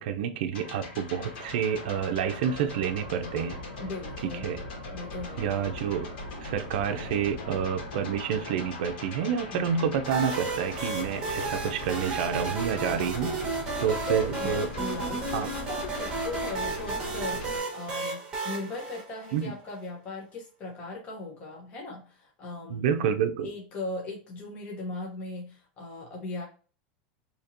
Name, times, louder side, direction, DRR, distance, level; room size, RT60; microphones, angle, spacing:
voice 1, 0.0-3.6 4.2-4.6 5.4-6.1 6.4-13.5 13.8-14.7 15.3-15.5 19.3-19.5 22.7-23.5, right 8 dB, 65° right, 7 dB, 0.5 m, -29 dB
sound 1, 0.5-17.6, left 2 dB, 80° left, 1.6 m, -39 dB
voice 2, 3.8-4.5 4.9-5.6 9.5-9.6 12.8-13.0 13.8-22.8 23.4-26.4, left 2 dB, 25° left, -1 dB, 0.8 m, -38 dB
sound 2, 10.0-19.7, right 3 dB, 15° right, 1.0 m, -33 dB
4.3 x 2.8 x 2.5 m, 0.37 s
supercardioid pair, 170°, 5 cm